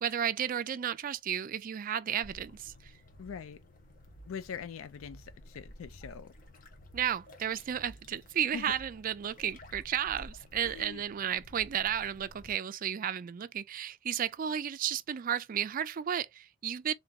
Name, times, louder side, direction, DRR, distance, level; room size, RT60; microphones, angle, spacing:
voice 1, 0.0-2.9 6.9-16.9, right 9 dB, 45° right, 0.3 m, -33 dB
sound 1, 2.2-12.5, equal, 45° left, 0.9 m, -53 dB
voice 2, 3.2-3.6 4.3-6.3 8.5-8.7 10.7-11.0, left 7 dB, 80° left, 0.4 m, -42 dB
3.8 x 2.9 x 3.6 m
head